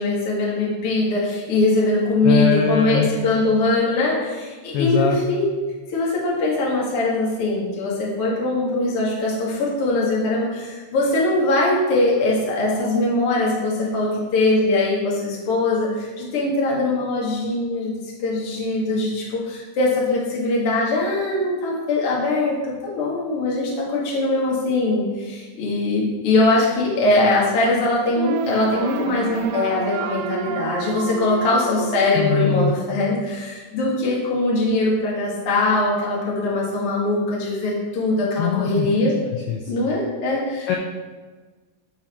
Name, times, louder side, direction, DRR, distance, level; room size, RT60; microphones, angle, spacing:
voice 1, 0.0-5.5 5.9-17.9 18.2-39.1 39.7-40.8, left 2 dB, 50° left, -4 dB, 1.7 m, -21 dB
voice 2, 2.2-3.1 4.7-5.2 32.2-32.7 38.4-38.9 39.5-39.6 40.7-40.8, left 7 dB, 85° left, 1 dB, 2.3 m, -21 dB
sound 1, 28.2-33.2, right 6 dB, 85° right, 2.4 m, -30 dB
12.0 x 4.2 x 4.3 m, 1.4 s
omnidirectional pair, 5.4 m